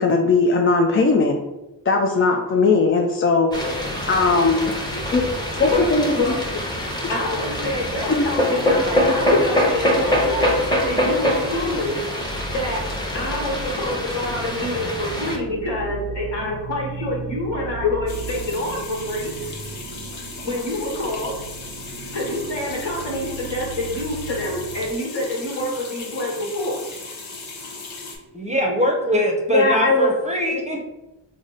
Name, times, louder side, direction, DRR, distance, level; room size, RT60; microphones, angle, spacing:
voice 1, 0.0-1.4 1.9-3.5 4.1-4.7 5.1-5.2 5.6-6.2 8.1-8.2 17.8-17.9 29.5-30.1, left 3 dB, 30° left, 2 dB, 0.4 m, -18 dB
sound 1, 3.5-15.4, left 1 dB, 10° left, 0.9 m, -24 dB
voice 2, 5.7-6.6 7.1-12.8 13.1-19.3 20.4-21.3 22.1-26.8, left 1 dB, 65° left, -2 dB, 1.3 m, -27 dB
sound 2, 14.2-24.9, right 5 dB, 60° right, 0.6 m, -36 dB
sound 3, 18.1-28.2, left 3 dB, 85° left, 0.8 m, -37 dB
voice 3, 28.3-30.8, equal, 15° right, 0 dB, 0.7 m, -22 dB
3.6 x 2.1 x 3.8 m, 1.0 s
cardioid pair, 40°, 46 cm